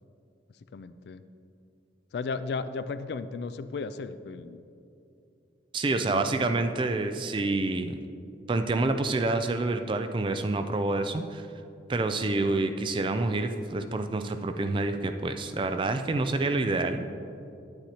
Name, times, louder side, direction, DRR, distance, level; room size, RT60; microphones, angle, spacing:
voice 1, 0.7-1.2 2.1-4.6 5.9-6.5, left 4 dB, 65° left, 12 dB, 0.3 m, -35 dB
voice 2, 5.7-8.0 8.5-11.5 11.9-17.1, right 2 dB, 25° right, 8 dB, 0.3 m, -28 dB
9.6 x 8.9 x 2.9 m, 2.6 s
head